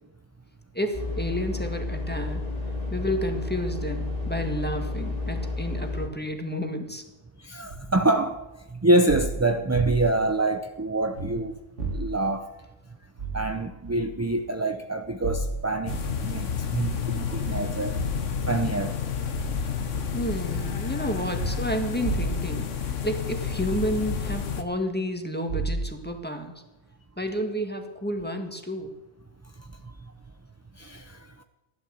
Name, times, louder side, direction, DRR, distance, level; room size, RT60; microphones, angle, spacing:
voice 1, 0.7-2.4 2.9-7.0 20.1-26.5 27.2-28.9, equal, 10° left, 1.8 m, -31 dB
sound 1, 0.9-6.1, left 3 dB, 30° left, 2.5 m, -31 dB
voice 2, 7.4-11.6 11.9-12.5 13.3-18.0 18.5-18.9 30.8-31.2, right 2 dB, 20° right, 0.5 m, -26 dB
sound 2, 7.7-7.9 9.1-10.2 11.1-11.3 11.8-12.3 13.2-13.4 13.8-14.1 15.2-16.2 17.3-17.6 17.9-18.2 19.3-19.7 20.0-20.3 21.4-22.6 23.4-24.3 25.5-26.0, right 3 dB, 85° right, 2.6 m, -32 dB
sound 3, 15.9-24.6, left 7 dB, 90° left, 1.5 m, -30 dB
16.0 x 11.5 x 7.7 m
omnidirectional pair, 1.2 m